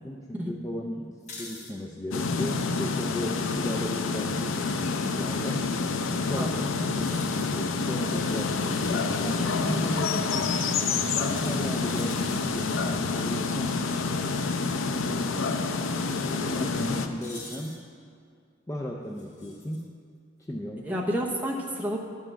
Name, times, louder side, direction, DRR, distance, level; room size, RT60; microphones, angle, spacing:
voice 1, 0.0-4.8 5.2-5.7 6.3-6.6 7.0-10.8 11.2-13.8 14.8-15.7 16.3-17.8 18.7-19.9 20.4-20.9, equal, 15° left, -1 dB, 0.4 m, -35 dB
sound 1, 1.2-1.7 4.3-4.6 7.0-7.6 8.3-8.7 10.9-12.4 14.5-14.7 15.1-15.2 17.2-17.8 19.2-19.8, left 3 dB, 35° left, 1.4 m, -46 dB
sound 2, 2.1-17.1, left 4 dB, 85° left, 0.6 m, -28 dB
voice 2, 6.3-7.0 20.8-22.0, equal, 10° right, -1 dB, 0.9 m, -30 dB
11.0 x 5.6 x 6.1 m, 2.2 s
head